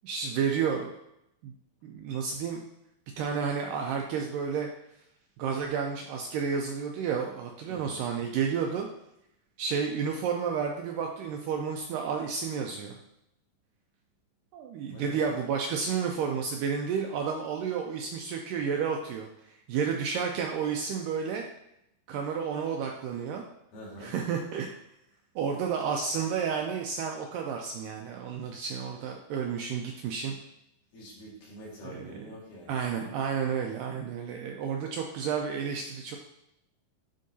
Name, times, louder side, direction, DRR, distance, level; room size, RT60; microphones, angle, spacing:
voice 1, 0.0-0.9 1.4-1.5 1.8-2.6 3.2-4.7 5.4-8.9 9.6-13.0 14.5-19.3 19.7-21.5 22.1-23.4 24.0-24.7 25.4-30.4 31.8-32.3 32.7-36.2, right 6 dB, 80° right, 2 dB, 2.0 m, -31 dB
voice 2, 7.7-8.0 14.8-15.2 23.7-24.1 30.9-32.7, equal, 65° left, -6 dB, 3.4 m, -45 dB
9.9 x 3.7 x 2.7 m, 0.80 s
omnidirectional pair, 4.2 m